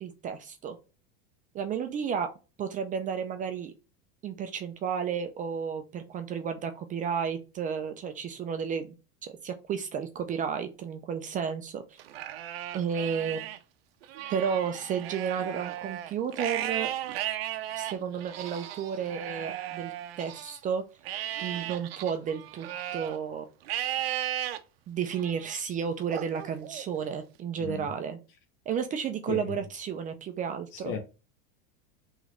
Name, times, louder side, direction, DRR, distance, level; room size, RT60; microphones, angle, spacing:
voice 1, 0.0-0.8 1.5-2.3 2.6-3.7 4.2-8.9 9.2-12.0 12.7-13.5 14.3-16.9 17.8-20.8 21.4-23.5 24.9-28.2 28.7-30.9, right 7 dB, 25° right, 0.4 m, -32 dB
Livestock farm animals working animals, 12.0-13.6 14.0-20.6 21.1-23.2 23.7-24.6 25.1-25.6 26.1-27.2, right 12 dB, 90° right, 0.5 m, -35 dB
voice 2, 27.6-27.9 29.3-29.6 30.7-31.0, left 5 dB, 50° left, 1.1 m, -35 dB
3.1 x 3.1 x 3.6 m
supercardioid pair, 120°, 29 cm